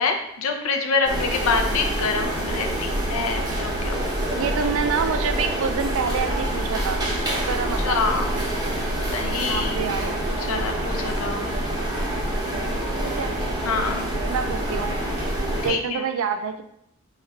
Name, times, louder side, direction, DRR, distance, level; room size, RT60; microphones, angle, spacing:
voice 1, 0.0-3.9 7.8-8.3 9.1-9.9 10.3-11.5 13.6-14.1 15.6-16.0, left 4 dB, 70° left, 4 dB, 0.5 m, -26 dB
sound 1, 1.0-15.7, right 1 dB, 20° right, 0.7 m, -26 dB
voice 2, 4.3-7.0 7.4-8.1 9.5-10.2 13.0-13.3 14.3-14.9 15.6-16.6, right 6 dB, 65° right, 9 dB, 0.3 m, -27 dB
3.1 x 2.4 x 4.3 m, 0.75 s
head